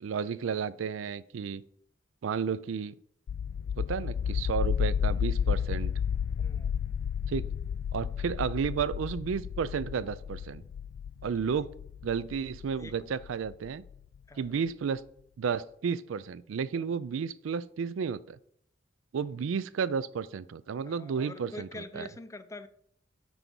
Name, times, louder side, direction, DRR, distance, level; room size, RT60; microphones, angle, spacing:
voice 1, 0.0-1.6 2.2-3.0 3.8-5.9 7.3-7.5 7.9-10.6 11.2-11.7 12.0-13.8 14.4-15.0 15.4-18.4 19.1-22.1, right 6 dB, 85° right, 0.4 m, -32 dB
sound 1, 3.3-14.0, left 7 dB, 85° left, 0.3 m, -32 dB
voice 2, 6.4-6.7 11.2-11.3 12.8-12.9 14.3-14.5 16.7-16.8 20.8-22.7, left 2 dB, 15° left, 0.4 m, -45 dB
6.2 x 4.5 x 5.3 m
head